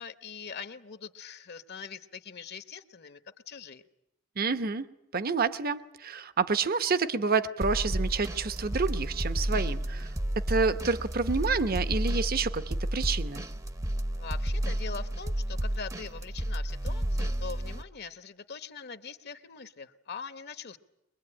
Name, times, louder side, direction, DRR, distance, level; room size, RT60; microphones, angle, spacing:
voice 1, 0.0-3.2 3.5-3.8 14.1-20.8, left 5 dB, 55° left, 11 dB, 1.0 m, -42 dB
voice 2, 4.4-4.9 5.1-10.1 10.5-13.5, right 4 dB, 50° right, 12 dB, 0.9 m, -29 dB
sound 1, 7.6-17.8, right 1 dB, 15° right, 0.8 m, -31 dB
23.0 x 22.0 x 8.8 m, 0.88 s
head